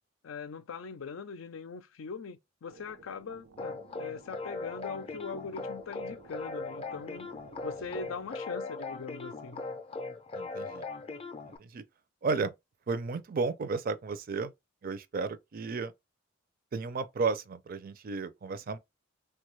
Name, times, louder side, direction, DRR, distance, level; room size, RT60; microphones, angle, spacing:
voice 1, 0.2-7.3 7.6-9.6, left 5 dB, 90° left, 0.5 m, -41 dB
sound 1, 2.6-8.3, right 4 dB, 85° right, 0.6 m, -55 dB
sound 2, 3.6-11.6, left 3 dB, 30° left, 0.4 m, -39 dB
voice 2, 10.4-10.9 11.6-11.8 12.2-12.5 12.9-14.5 14.8-15.9 16.7-18.8, right 4 dB, 45° right, 0.4 m, -33 dB
3.3 x 2.3 x 3.1 m
head